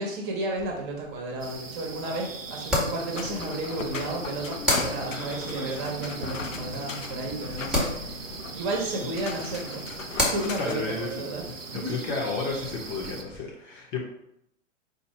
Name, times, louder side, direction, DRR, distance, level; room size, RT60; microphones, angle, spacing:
voice 1, 0.0-8.2 8.5-10.0 10.3-11.4 11.7-12.0, right 2 dB, 30° right, 0 dB, 1.2 m, -32 dB
sound 1, 0.6-13.4, left 1 dB, ahead, 1.0 m, -35 dB
sound 2, 1.4-13.2, right 4 dB, 85° right, 0.7 m, -40 dB
sound 3, 3.1-10.7, left 5 dB, 85° left, 0.5 m, -37 dB
voice 2, 10.6-11.3 11.7-14.0, left 4 dB, 25° left, -1 dB, 0.8 m, -32 dB
4.5 x 2.7 x 4.3 m, 0.77 s
figure-of-eight pair, 105°, 38 cm